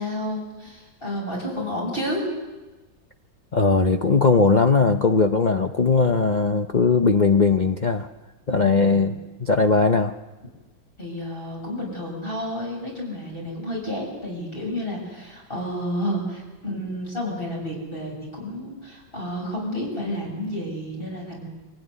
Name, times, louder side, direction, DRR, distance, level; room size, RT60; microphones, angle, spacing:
voice 1, 0.0-2.2 8.5-9.1 11.0-21.5, equal, 25° left, -2 dB, 7.8 m, -31 dB
voice 2, 3.5-8.1 8.5-10.1, left 4 dB, 80° left, 5 dB, 0.4 m, -19 dB
25.0 x 16.5 x 9.8 m, 1.2 s
omnidirectional pair, 2.1 m